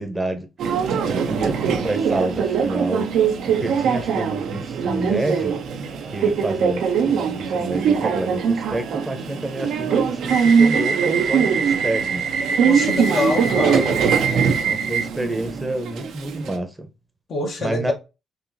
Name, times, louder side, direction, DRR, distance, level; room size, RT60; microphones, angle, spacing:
voice 1, 0.0-3.1 3.5-5.6 6.1-12.2 13.5-13.6 14.6-16.9 17.6-17.9, right 1 dB, 15° right, 0.9 m, -29 dB
Subway metro underground, 0.6-16.6, right 6 dB, 75° right, 0.7 m, -21 dB
voice 2, 12.6-14.0 17.3-17.9, left 2 dB, 55° left, 1.4 m, -25 dB
4.1 x 2.7 x 2.7 m
cardioid pair, 90°, 0 cm